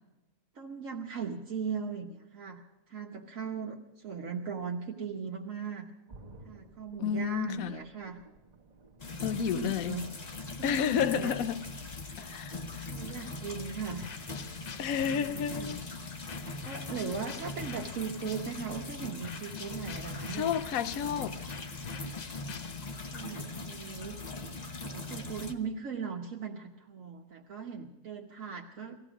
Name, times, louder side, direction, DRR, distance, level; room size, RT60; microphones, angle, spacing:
voice 1, 0.5-2.6 2.9-5.9 6.4-8.2 9.1-10.0 10.6-11.4 12.9-14.1 15.1-15.8 16.4-20.6 23.1-24.2 24.8-29.0, right 6 dB, 60° right, 1.4 m, -38 dB
sound 1, 6.1-11.9 12.3-12.4, right 2 dB, 30° right, 1.3 m, -56 dB
voice 2, 7.0-7.8 9.2-10.0 10.6-11.6 12.2-12.9 14.8-15.8 20.3-21.4, left 8 dB, 70° left, 1.1 m, -31 dB
sound 2, 9.0-25.5, left 3 dB, 30° left, 0.9 m, -41 dB
sound 3, 14.0-18.8 19.2-23.2, left 7 dB, 85° left, 0.3 m, -47 dB
18.5 x 15.0 x 5.0 m
omnidirectional pair, 1.6 m